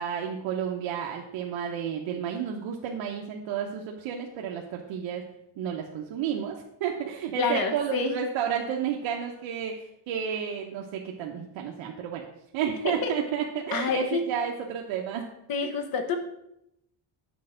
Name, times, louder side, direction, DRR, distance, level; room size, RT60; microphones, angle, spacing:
voice 1, 0.0-5.2 5.6-12.2 12.5-15.2 15.6-15.7, right 8 dB, 75° right, 0 dB, 1.0 m, -31 dB
voice 2, 7.4-8.1 12.8-13.1 13.7-14.2 15.5-16.2, left 5 dB, 45° left, 6 dB, 1.3 m, -28 dB
8.4 x 4.4 x 6.3 m, 0.81 s
cardioid pair, 150°, 47 cm